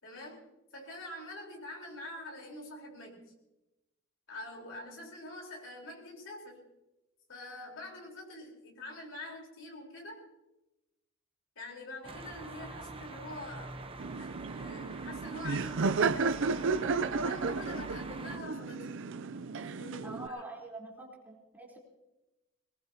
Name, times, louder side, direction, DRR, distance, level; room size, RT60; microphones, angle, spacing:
voice 1, 0.0-3.3 4.3-6.7 7.3-10.3 11.6-14.3 14.5-16.7 17.2-19.0 19.5-20.7, left 1 dB, 65° left, -1 dB, 4.4 m, -45 dB
sound 1, 12.0-18.4, right 3 dB, 25° right, 0.9 m, -45 dB
Laughter, 14.0-20.3, right 4 dB, 60° right, 0.5 m, -33 dB
voice 2, 20.0-21.8, right 2 dB, 10° right, -3 dB, 4.0 m, -45 dB
22.0 x 20.0 x 2.9 m, 0.97 s
head